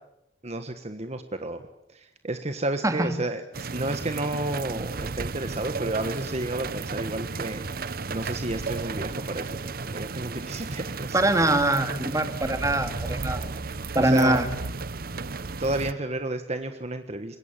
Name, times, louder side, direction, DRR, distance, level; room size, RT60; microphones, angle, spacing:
voice 1, 0.4-1.6 1.9-9.6 9.9-11.2 13.9-14.4 15.6-17.4, right 2 dB, 40° right, 8 dB, 1.5 m, -31 dB
sound 1, 3.5-15.9, right 3 dB, 55° right, 1.0 m, -33 dB
voice 2, 11.1-13.5 13.9-14.5, right 1 dB, 20° right, 8 dB, 2.4 m, -23 dB
26.0 x 21.5 x 9.0 m, 0.81 s
head